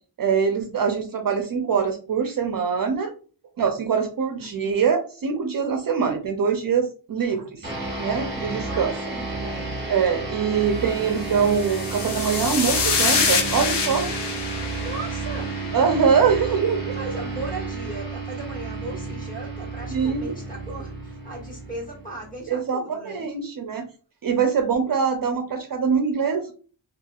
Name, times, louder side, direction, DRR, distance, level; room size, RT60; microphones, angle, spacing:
voice 1, 0.2-3.1 3.6-7.7 8.0-8.9 9.9-14.1 15.7-17.0 19.9-20.4 22.5-23.9 24.2-26.5, right 6 dB, 50° right, 5 dB, 0.5 m, -23 dB
voice 2, 4.4-4.7 8.5-9.8 14.8-15.7 16.3-23.3, right 2 dB, 20° left, -3 dB, 1.4 m, -37 dB
sound 1, 7.6-22.4, right 3 dB, 25° right, 1.0 m, -32 dB
sound 2, 11.4-15.9, left 5 dB, 65° left, 0.7 m, -26 dB
3.4 x 2.4 x 2.3 m, 0.38 s
wide cardioid pair, 135°, 44 cm